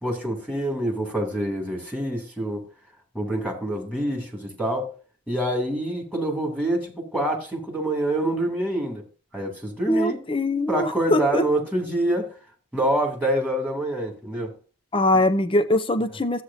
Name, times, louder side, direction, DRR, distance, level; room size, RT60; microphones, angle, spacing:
voice 1, 0.0-2.6 3.1-4.9 5.3-9.0 9.3-10.2 10.7-12.3 12.7-14.5, right 1 dB, 5° left, 2.7 m, -26 dB
voice 2, 9.9-11.5 14.9-16.4, left 1 dB, 25° left, 0.7 m, -22 dB
14.0 x 8.1 x 2.7 m
head